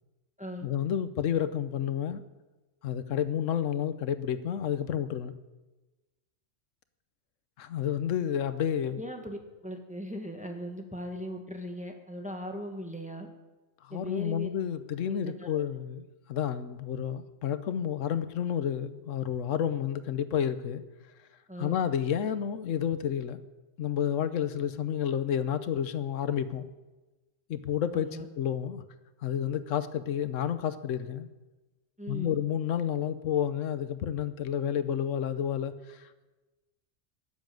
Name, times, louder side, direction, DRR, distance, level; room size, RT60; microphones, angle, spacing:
voice 1, 0.6-2.2 2.8-5.3 7.6-9.0 13.8-16.0 16.3-20.8 21.6-23.4 23.8-26.7 27.5-28.8 29.2-31.3 32.1-36.3, left 9 dB, 85° left, 12 dB, 1.1 m, -30 dB
voice 2, 9.0-13.3 13.9-14.5 15.1-15.6 21.5-21.8 27.9-28.2 32.0-32.3, equal, 5° right, 3 dB, 1.4 m, -39 dB
13.5 x 7.5 x 9.1 m, 1.1 s
omnidirectional pair, 1.3 m